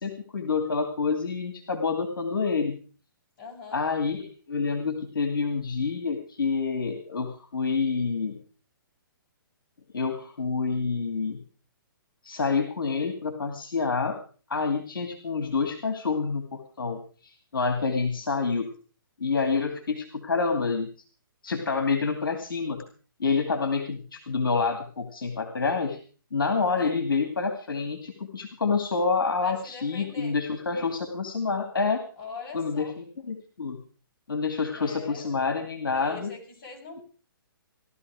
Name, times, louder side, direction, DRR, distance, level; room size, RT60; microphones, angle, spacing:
voice 1, 0.0-2.8 3.7-8.4 9.9-11.4 12.2-14.2 14.5-18.7 19.2-20.9 21.4-22.8 23.2-26.0 26.3-32.0 32.5-33.8 34.3-36.3, left 4 dB, 70° left, 5 dB, 2.5 m, -28 dB
voice 2, 3.4-3.8 26.6-27.0 29.4-30.4 32.2-32.9 34.7-35.4 35.9-37.0, left 4 dB, 35° left, 0 dB, 6.6 m, -42 dB
17.0 x 12.5 x 4.9 m, 0.40 s
figure-of-eight pair, 130°, 12 cm